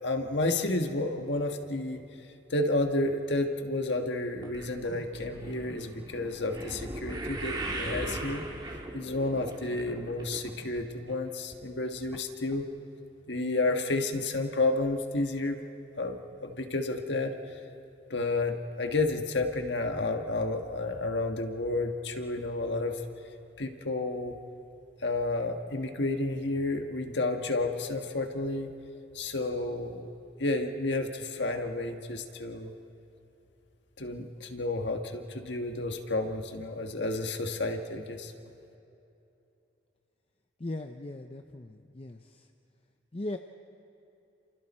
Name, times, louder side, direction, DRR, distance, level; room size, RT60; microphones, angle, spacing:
voice 1, 0.0-2.0 2.5-8.4 8.9-12.7 13.3-15.6 16.0-17.3 18.1-23.0 23.6-24.4 25.0-28.7 29.1-30.1 30.4-32.7 34.0-38.3, left 2 dB, 70° left, 4 dB, 1.6 m, -31 dB
sound 1, 4.4-10.8 11.1-11.6 12.1-12.2 12.5-12.6, right 1 dB, 25° right, 1.9 m, -39 dB
voice 2, 40.6-42.5 43.1-43.4, left 2 dB, 30° left, 6 dB, 0.6 m, -38 dB
30.0 x 27.5 x 4.3 m, 2.8 s
head